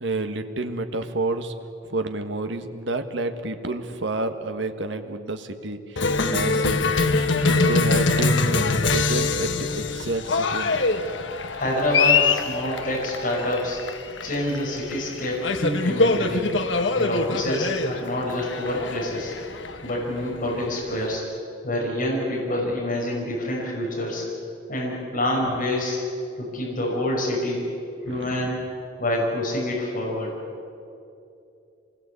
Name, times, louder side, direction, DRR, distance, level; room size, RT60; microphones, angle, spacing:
voice 1, 0.0-1.5 1.9-5.8 6.3-6.9 7.5-10.7 28.0-28.6, right 2 dB, 65° right, 7 dB, 1.5 m, -29 dB
Cheering, 6.0-21.1, left 3 dB, 70° left, 1.2 m, -24 dB
voice 2, 11.5-13.8 14.2-16.5 16.9-19.3 19.8-21.2 21.6-24.3 24.7-26.0 26.4-27.6 28.0-28.6 29.0-30.3, left 1 dB, 45° left, -3 dB, 5.8 m, -27 dB
26.0 x 20.5 x 8.5 m, 2.6 s
head